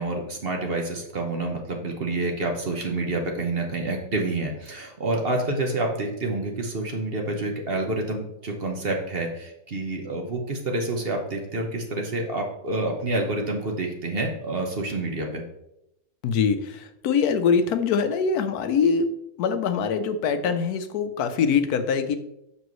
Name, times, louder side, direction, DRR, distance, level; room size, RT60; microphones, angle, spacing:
voice 1, 0.0-15.4, right 2 dB, 45° right, 2 dB, 1.1 m, -28 dB
voice 2, 16.2-19.1 19.4-22.2, left 6 dB, 80° left, 9 dB, 1.1 m, -23 dB
7.2 x 6.2 x 3.1 m, 0.82 s
omnidirectional pair, 1.6 m